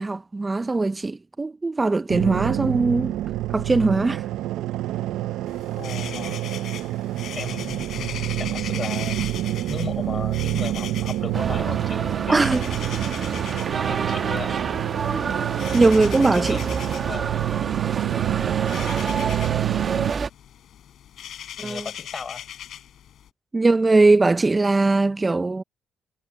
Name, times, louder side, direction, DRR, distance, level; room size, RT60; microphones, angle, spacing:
voice 1, 0.0-3.2 3.5-4.3 12.3-12.7 15.1-15.3 15.7-16.6 21.6-21.8 23.5-25.6, right 3 dB, 20° right, 0.5 m, -20 dB
sound 1, 2.1-20.1, right 14 dB, 90° right, 0.5 m, -27 dB
sound 2, 5.5-23.3, left 10 dB, 70° left, 6.3 m, -40 dB
voice 2, 5.7-6.5 7.3-9.2 9.7-12.6 13.9-14.6 16.2-16.6 17.0-17.3 21.6-22.4, left 5 dB, 40° left, 6.2 m, -35 dB
sound 3, 11.3-20.3, right 5 dB, 45° right, 1.1 m, -28 dB
cardioid pair, 90°, 0 cm